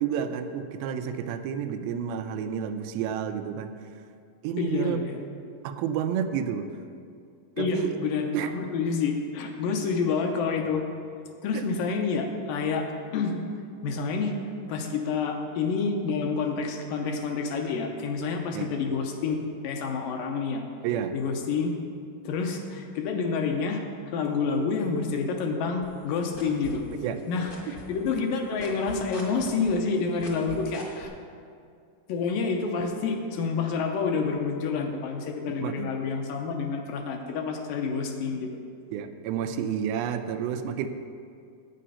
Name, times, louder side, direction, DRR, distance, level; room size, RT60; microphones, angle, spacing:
voice 1, 0.0-3.7 4.4-5.0 5.6-6.7 7.6-8.0 8.3-8.5 11.5-11.7 18.5-18.7 20.8-21.2 27.0-27.2 35.6-35.9 38.9-40.9, right 8 dB, 90° right, 8 dB, 2.5 m, -30 dB
voice 2, 4.6-5.1 7.6-10.8 11.4-12.9 13.1-13.4 13.8-14.3 14.7-19.4 19.6-20.6 21.1-21.8 22.2-23.8 24.1-26.8 27.3-31.1 32.1-38.5, left 5 dB, 75° left, 3 dB, 2.3 m, -28 dB
sound 1, 25.8-27.2 27.5-31.1, left 2 dB, 40° left, 1.1 m, -41 dB
9.2 x 8.6 x 5.6 m, 2.3 s
omnidirectional pair, 4.2 m